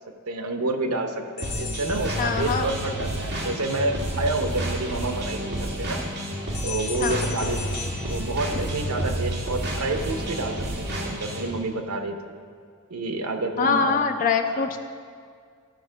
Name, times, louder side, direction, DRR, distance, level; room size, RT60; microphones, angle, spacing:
voice 1, 0.3-6.0 6.6-7.8 8.1-12.3 12.9-14.0 14.4-14.7, right 2 dB, 80° right, 5 dB, 0.8 m, -29 dB
sound 1, 1.4-2.9 6.5-9.1, left 8 dB, 80° left, 1.2 m, -38 dB
sound 2, 1.4-11.5, right 1 dB, 50° right, 1.7 m, -30 dB
voice 2, 2.2-2.7 7.0-7.3 13.6-14.8, left 5 dB, 40° left, 5 dB, 0.4 m, -23 dB
13.0 x 4.5 x 6.3 m, 2.1 s
head